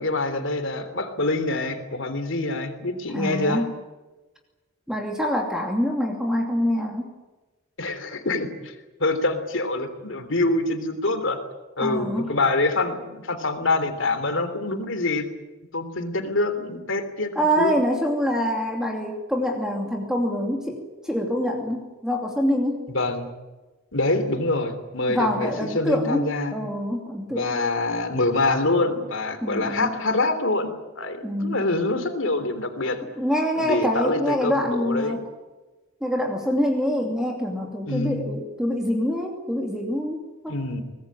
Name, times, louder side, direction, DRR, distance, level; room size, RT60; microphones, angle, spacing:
voice 1, 0.0-3.6 7.8-8.8 9.0-11.4 11.8-15.2 15.7-17.3 17.6-17.8 22.9-23.3 23.9-26.5 27.3-33.0 33.6-35.2 37.9-38.2 40.5-40.8, left 2 dB, 60° left, 9 dB, 3.3 m, -25 dB
voice 2, 3.1-3.7 4.9-7.1 11.8-12.3 17.3-22.9 25.1-27.6 29.4-30.0 31.2-31.6 33.2-35.2 36.0-40.5, equal, 5° right, 1 dB, 2.8 m, -25 dB
23.5 x 20.0 x 9.0 m, 1.2 s
head